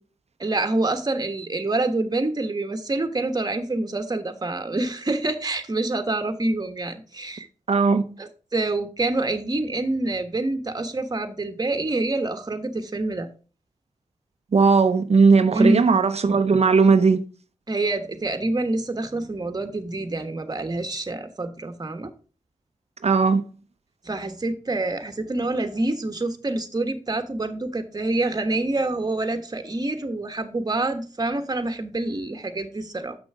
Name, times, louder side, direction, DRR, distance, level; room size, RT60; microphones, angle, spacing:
voice 1, 0.4-7.5 8.2-13.3 15.5-15.9 17.7-22.1 24.0-33.2, right 2 dB, 30° right, 1.3 m, -26 dB
voice 2, 7.7-8.0 14.5-17.2 23.0-23.4, right 4 dB, 60° right, 0.7 m, -17 dB
7.8 x 6.2 x 4.8 m
cardioid pair, 65°, 12 cm